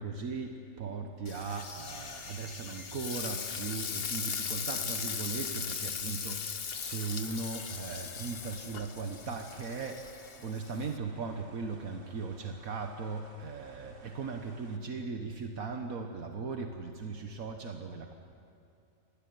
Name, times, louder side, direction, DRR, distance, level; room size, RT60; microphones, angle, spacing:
voice 1, 0.0-18.2, right 4 dB, 80° right, 4 dB, 1.7 m, -38 dB
Frying (food), 1.3-11.0, left 6 dB, 45° left, 1.1 m, -39 dB
sound 1, 1.5-8.7, left 4 dB, 85° left, 2.3 m, -51 dB
sound 2, 6.7-14.8, right 3 dB, 40° right, 1.7 m, -58 dB
27.0 x 19.5 x 9.4 m, 2.7 s
omnidirectional pair, 1.5 m